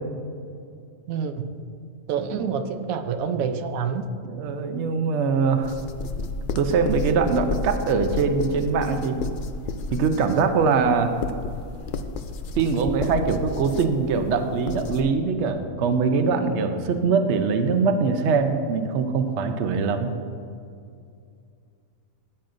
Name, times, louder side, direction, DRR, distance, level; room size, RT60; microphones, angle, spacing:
voice 1, 1.1-1.4 2.1-4.1, right 6 dB, 85° right, 8 dB, 1.0 m, -27 dB
voice 2, 4.2-5.7 6.5-9.2 9.9-11.1 12.6-20.1, right 5 dB, 60° right, 7 dB, 0.9 m, -22 dB
sound 1, 5.6-15.0, left 3 dB, 70° left, 0.4 m, -32 dB
14.0 x 9.0 x 2.6 m, 2.4 s
omnidirectional pair, 1.4 m